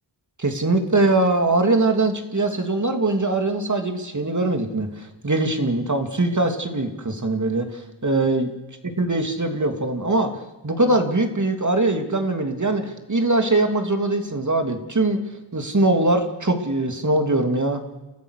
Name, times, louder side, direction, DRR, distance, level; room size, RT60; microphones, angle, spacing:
voice 1, 0.4-8.5 9.0-10.3 10.6-15.2 15.5-17.8, right 2 dB, 40° right, 5 dB, 2.9 m, -22 dB
30.0 x 14.5 x 6.7 m, 1.1 s
cardioid pair, 45°, 47 cm